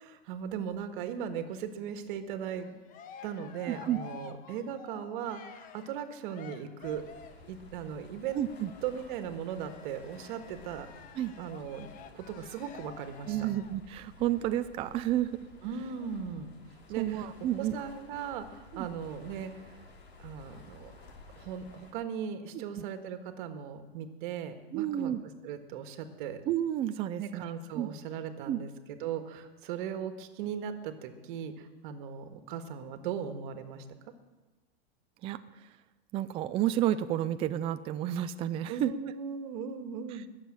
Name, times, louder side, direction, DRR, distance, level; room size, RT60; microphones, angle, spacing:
voice 1, 0.0-2.8 3.2-7.1 7.5-8.4 8.8-10.9 11.4-11.9 12.1-13.5 15.6-16.5 16.9-17.3 17.6-19.7 20.2-20.9 21.4-25.1 25.4-26.4 27.2-33.9 38.7-40.3, right 8 dB, 55° right, 8 dB, 1.7 m, -38 dB
Cheering, 2.5-7.5 8.3-13.8, left 8 dB, 25° left, 0.9 m, -51 dB
voice 2, 3.7-4.0 8.3-8.7 11.2-11.3 13.3-15.3 17.0-17.7 18.7-18.9 22.5-22.8 24.7-25.2 26.5-27.4 27.8-27.9 28.5-28.6 35.2-35.4 36.1-38.9, right 12 dB, 20° right, 10 dB, 0.4 m, -31 dB
sound 1, 6.8-21.9, left 3 dB, 85° left, 3.7 m, -54 dB
20.5 x 7.4 x 7.6 m, 1.2 s
hypercardioid pair, 140°, 31 cm